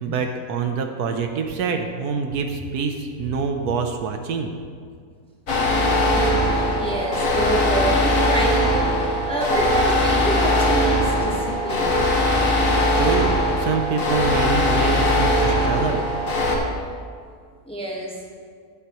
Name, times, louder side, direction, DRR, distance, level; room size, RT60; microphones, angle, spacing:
voice 1, 0.0-4.5 13.0-16.0, right 5 dB, 75° right, 5 dB, 1.2 m, -26 dB
sound 1, 5.5-16.6, left 1 dB, 55° left, 1.7 m, -20 dB
voice 2, 6.1-12.0 17.6-18.2, right 1 dB, 5° left, -3 dB, 1.2 m, -27 dB
15.5 x 8.3 x 3.0 m, 2.1 s
omnidirectional pair, 1.7 m